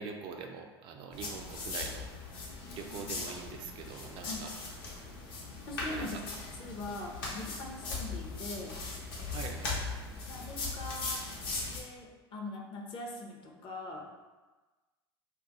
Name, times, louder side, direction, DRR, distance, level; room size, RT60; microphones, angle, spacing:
voice 1, 0.0-2.5 2.7-4.5 5.9-6.2 6.6-6.7 9.3-9.8, right 5 dB, 45° right, 4 dB, 0.3 m, -44 dB
sound 1, 1.1-11.8, left 3 dB, 65° left, 0.9 m, -39 dB
voice 2, 2.5-3.2 4.2-4.4 5.7-6.2 6.6-8.8 10.3-11.2 11.7-14.1, left 2 dB, 40° left, 0 dB, 0.6 m, -42 dB
2.3 x 2.2 x 3.9 m, 1.2 s
hypercardioid pair, 85°, 13 cm